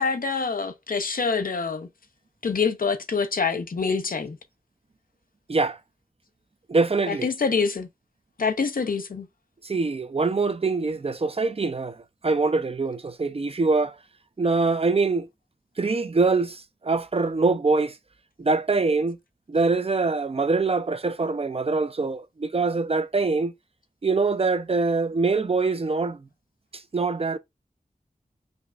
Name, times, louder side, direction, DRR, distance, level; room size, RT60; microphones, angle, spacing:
voice 1, 0.0-1.9 2.4-4.4 7.1-7.9 8.4-9.3, left 5 dB, 65° left, 0.5 m, -26 dB
voice 2, 6.7-7.3 9.6-12.0 12.2-14.0 14.4-15.3 15.8-18.0 18.4-19.2 19.5-23.5 24.0-26.2 26.9-27.4, right 3 dB, 40° right, 0.4 m, -24 dB
5.0 x 2.4 x 2.4 m
wide cardioid pair, 50°, 16 cm